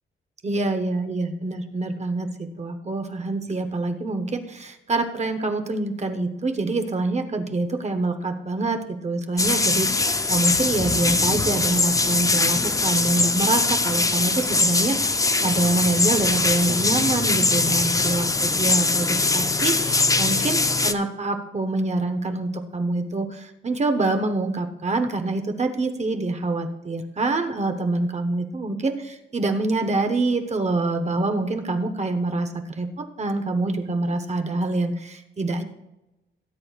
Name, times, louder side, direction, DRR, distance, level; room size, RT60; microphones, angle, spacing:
voice 1, 0.4-35.6, right 2 dB, 35° right, 6 dB, 0.9 m, -26 dB
sound 1, 9.4-20.9, left 3 dB, 15° left, 0.5 m, -22 dB
18.0 x 9.6 x 2.4 m, 0.94 s
wide cardioid pair, 155°, 21 cm